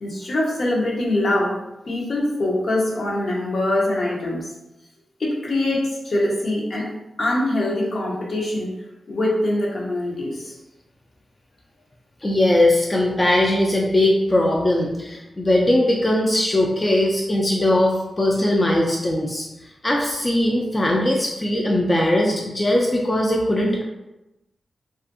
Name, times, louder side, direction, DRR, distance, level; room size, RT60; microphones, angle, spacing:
voice 1, 0.0-1.6 1.9-4.5 5.2-6.9 7.2-8.7 9.1-10.6, left 1 dB, 60° left, -3 dB, 0.7 m, -23 dB
voice 2, 12.2-19.5 19.8-23.8, left 1 dB, 30° left, -2 dB, 0.4 m, -20 dB
2.5 x 2.4 x 2.5 m, 0.96 s
cardioid pair, 55°, 0 cm